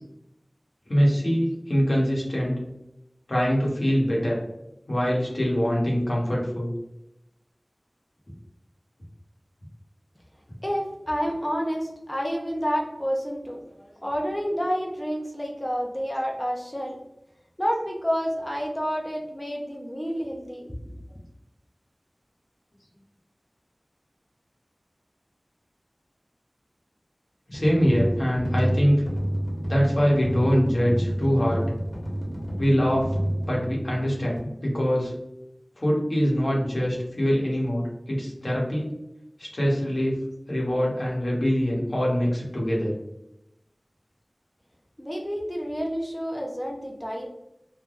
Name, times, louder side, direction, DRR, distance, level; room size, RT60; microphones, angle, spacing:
voice 1, 0.9-2.6 3.3-4.4 4.9-6.7 27.5-29.0 29.7-31.7 32.6-33.1 33.4-35.1 35.8-38.9 39.4-40.1 40.5-42.9, equal, 75° left, -4 dB, 1.0 m, -23 dB
voice 2, 10.6-17.0 17.6-20.7 45.0-47.3, equal, 15° left, 0 dB, 0.5 m, -29 dB
sound 1, 27.5-34.4, equal, 40° left, 1.1 m, -29 dB
3.3 x 2.1 x 2.5 m, 0.86 s
wide cardioid pair, 45°, 0 cm